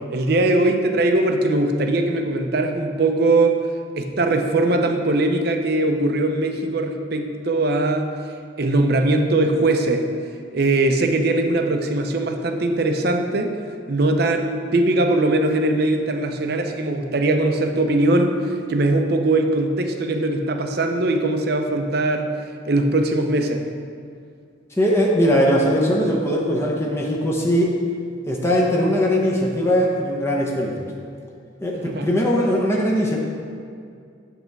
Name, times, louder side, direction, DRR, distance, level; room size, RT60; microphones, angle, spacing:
voice 1, 0.1-3.6 4.0-8.1 8.6-10.0 10.5-13.5 13.9-22.3 22.7-23.6 31.8-32.1, right 2 dB, 55° right, 4 dB, 0.6 m, -20 dB
voice 2, 24.8-27.7 28.3-30.8 31.6-33.2, equal, 15° left, -2 dB, 0.7 m, -20 dB
7.9 x 3.4 x 5.9 m, 2.3 s
head